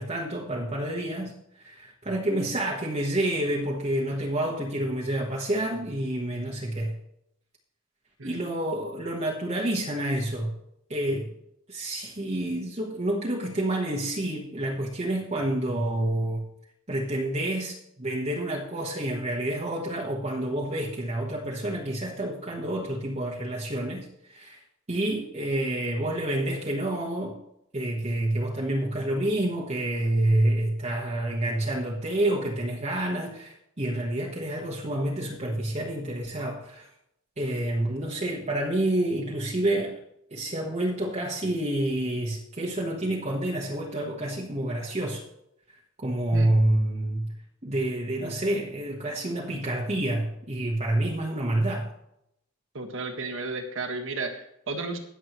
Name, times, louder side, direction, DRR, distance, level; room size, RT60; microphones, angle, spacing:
voice 1, 0.0-6.9 8.2-10.5 10.9-11.3 11.7-16.4 16.9-24.6 24.9-27.4 27.7-36.9 37.4-40.0 40.3-45.2 46.0-47.3 47.6-51.9, right 1 dB, 30° right, -2 dB, 1.3 m, -28 dB
voice 2, 52.7-55.0, right 3 dB, 60° right, 4 dB, 1.7 m, -33 dB
22.0 x 7.5 x 3.1 m, 0.78 s
head